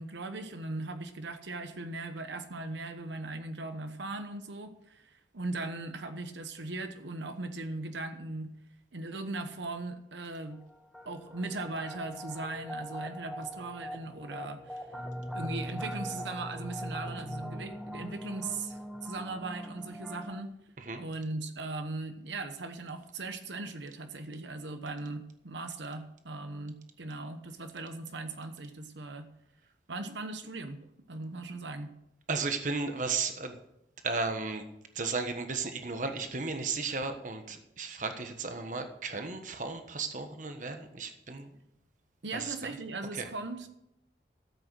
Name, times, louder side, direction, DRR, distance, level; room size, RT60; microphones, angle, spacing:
voice 1, 0.0-8.5 8.9-10.6 11.1-14.9 15.3-20.5 21.0-29.3 29.9-30.8 31.1-31.9 42.2-43.7, right 2 dB, 85° right, 8 dB, 1.1 m, -39 dB
sound 1, 10.5-20.4, equal, ahead, 1.0 m, -41 dB
voice 2, 32.3-33.5 34.0-34.6 34.9-41.5 42.3-42.5 43.2-43.3, right 4 dB, 45° right, 7 dB, 1.3 m, -34 dB
13.5 x 8.0 x 6.3 m, 0.81 s
head